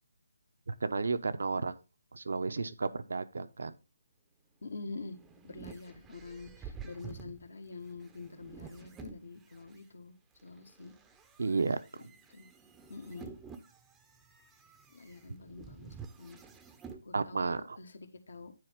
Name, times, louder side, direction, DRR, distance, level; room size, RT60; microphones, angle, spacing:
voice 1, 0.7-1.7 2.1-3.7 11.4-12.1 17.1-17.8, right 4 dB, 75° right, 12 dB, 0.8 m, -33 dB
voice 2, 4.6-5.2 5.4-10.1 10.4-10.9 12.3-12.5 12.9-13.3 14.9-16.4 17.0-18.5, left 3 dB, 70° left, 7 dB, 1.3 m, -46 dB
sound 1, 4.8-9.8 10.4-17.0, right 6 dB, 10° right, 0.6 m, -50 dB
9.7 x 4.2 x 3.6 m, 0.29 s
hypercardioid pair, 155°, 0 cm